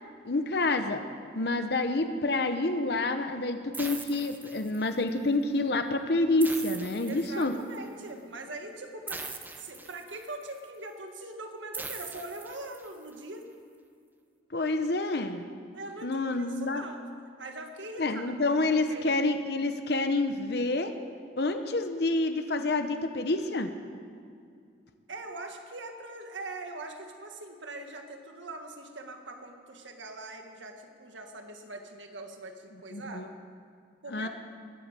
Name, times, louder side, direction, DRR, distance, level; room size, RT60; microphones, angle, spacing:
voice 1, 0.2-1.0 1.3-7.5 14.5-15.4 16.0-16.8 18.0-20.9 21.4-23.7 32.9-33.3 34.1-34.3, left 2 dB, 60° left, 8 dB, 0.8 m, -28 dB
sound 1, 3.7-5.1 6.4-7.8 9.1-10.4 11.7-13.1, right 3 dB, 10° right, 0.7 m, -41 dB
voice 2, 7.1-13.5 15.7-17.0 17.4-18.3 18.9-19.1 25.1-33.3 34.0-34.3, right 2 dB, 80° right, 4 dB, 1.8 m, -42 dB
21.0 x 8.8 x 7.5 m, 2.3 s
head